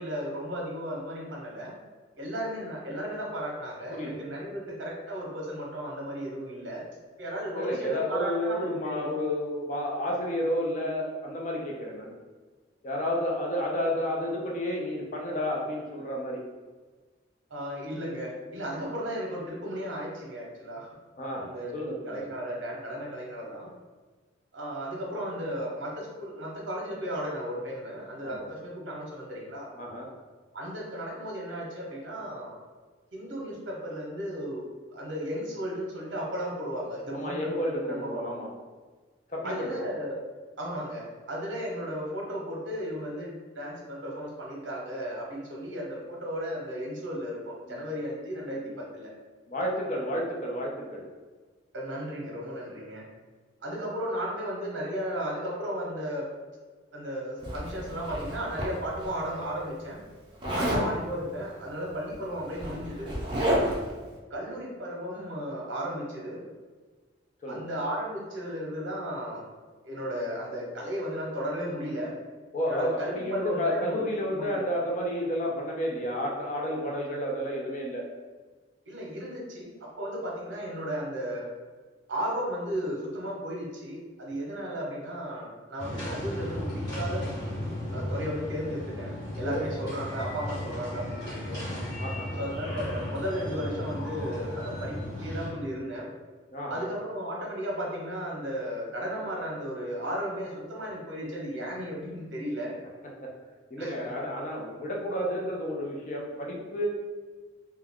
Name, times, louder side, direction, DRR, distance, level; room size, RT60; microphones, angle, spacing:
voice 1, 0.0-1.7 2.2-6.8 7.2-9.2 17.5-20.9 21.4-21.7 22.1-23.7 24.5-29.7 30.5-32.6 33.1-38.3 39.4-40.2 40.6-49.1 51.7-53.0 53.6-56.3 56.9-60.0 60.5-63.1 64.3-66.4 67.5-69.4 69.8-72.1 72.7-74.0 74.3-74.7 78.9-81.5 82.1-87.2 87.9-91.6 92.4-96.1 96.7-102.7 103.8-104.1, equal, 80° right, -2 dB, 0.7 m, -35 dB
voice 2, 7.5-12.1 12.8-16.4 21.2-22.2 28.2-28.5 29.8-30.1 37.1-38.5 39.3-39.8 47.7-47.8 49.5-51.0 60.4-60.8 63.5-63.8 67.4-67.7 72.5-78.1 89.4-89.6 92.0-92.4 96.5-96.8 103.0-103.3 103.7-106.9, equal, 40° left, -2 dB, 0.5 m, -31 dB
Zipper (clothing), 57.4-59.1 60.4-60.9 62.0-62.1 62.4-63.9, equal, 25° right, 0.5 m, -30 dB
sound 1, 85.8-95.5, left 1 dB, 20° left, 1.2 m, -35 dB
2.3 x 2.2 x 3.4 m, 1.4 s
head